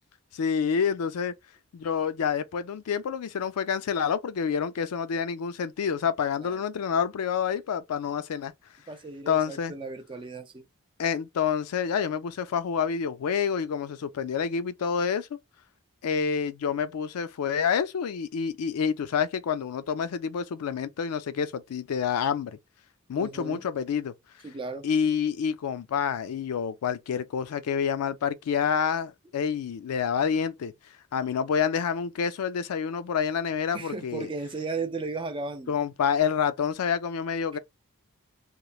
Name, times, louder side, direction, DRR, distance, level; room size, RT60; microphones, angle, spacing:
voice 1, 0.3-1.3 1.7-8.5 9.3-9.7 11.0-15.3 16.0-22.6 23.1-24.1 24.8-30.7 31.1-34.3 35.7-37.6, left 7 dB, 85° left, 0.4 m, -28 dB
voice 2, 8.9-10.6 23.1-23.6 24.4-24.9 33.7-35.7, right 3 dB, 25° right, 0.3 m, -35 dB
3.0 x 2.0 x 2.3 m
head